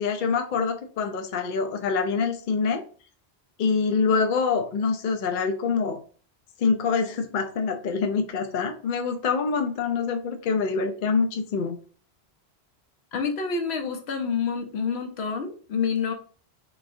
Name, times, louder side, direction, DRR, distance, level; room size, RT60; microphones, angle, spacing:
voice 1, 0.0-2.8 3.6-6.0 6.6-11.7, left 5 dB, 60° left, 4 dB, 0.6 m, -25 dB
voice 2, 13.1-16.1, left 5 dB, 75° left, 4 dB, 1.0 m, -28 dB
3.7 x 3.2 x 2.6 m, 0.41 s
omnidirectional pair, 1.1 m